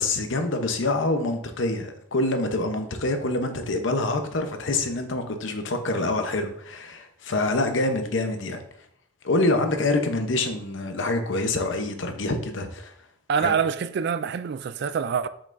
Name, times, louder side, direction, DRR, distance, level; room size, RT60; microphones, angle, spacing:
voice 1, 0.0-8.6 9.2-12.9 13.3-13.5, left 2 dB, 70° left, 0.8 m, -26 dB
voice 2, 13.3-15.3, right 6 dB, 55° right, 0.3 m, -25 dB
7.1 x 5.3 x 2.6 m
head